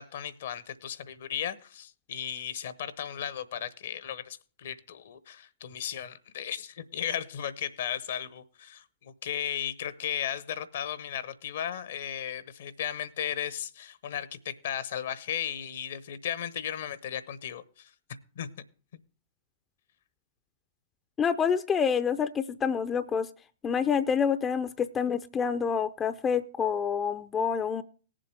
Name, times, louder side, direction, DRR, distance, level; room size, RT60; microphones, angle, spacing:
voice 1, 0.0-17.9 18.4-18.5, left 9 dB, 60° left, 15 dB, 0.9 m, -35 dB
voice 2, 21.2-23.3 23.6-27.8, left 7 dB, 20° left, 10 dB, 0.5 m, -27 dB
18.5 x 7.5 x 3.4 m, 0.40 s
figure-of-eight pair, 105°, 0 cm